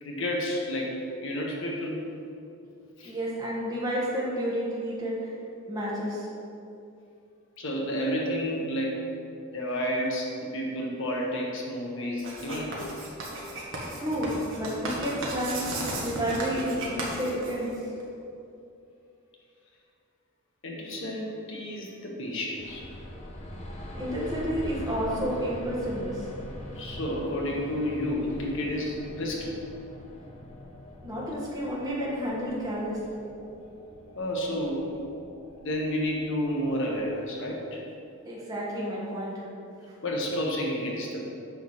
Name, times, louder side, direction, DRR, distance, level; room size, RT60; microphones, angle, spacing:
voice 1, 0.0-2.0 3.0-3.1 7.6-9.1 9.5-13.0 20.6-22.8 26.8-29.6 34.2-35.0 35.6-37.8 40.0-41.3, equal, 55° left, -1 dB, 1.4 m, -31 dB
voice 2, 3.0-5.3 5.7-6.3 13.9-15.7 16.0-17.8 23.9-26.3 31.0-33.2 38.2-39.5 39.9-40.0, equal, 15° right, -6 dB, 1.5 m, -31 dB
Writing, 12.2-18.0, right 2 dB, 55° right, 1.6 m, -35 dB
sound 1, 22.6-37.2, equal, 30° left, 0.9 m, -43 dB
9.1 x 3.9 x 6.4 m, 2.6 s
head